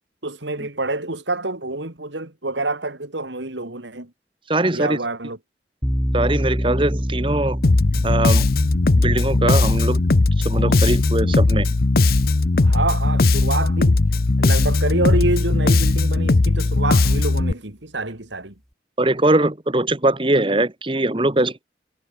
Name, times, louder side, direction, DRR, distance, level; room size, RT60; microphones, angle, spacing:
voice 1, 0.2-4.1 4.7-5.4 12.6-14.0 14.4-18.5, right 2 dB, 85° right, 3.4 m, -27 dB
voice 2, 4.5-5.0 6.1-7.6 8.0-8.5 9.0-10.0 10.4-11.7 19.0-21.6, right 2 dB, 30° right, 1.3 m, -21 dB
sound 1, 5.8-14.7, equal, ahead, 1.6 m, -29 dB
Bass guitar, 7.6-17.5, left 3 dB, 55° left, 0.7 m, -18 dB
head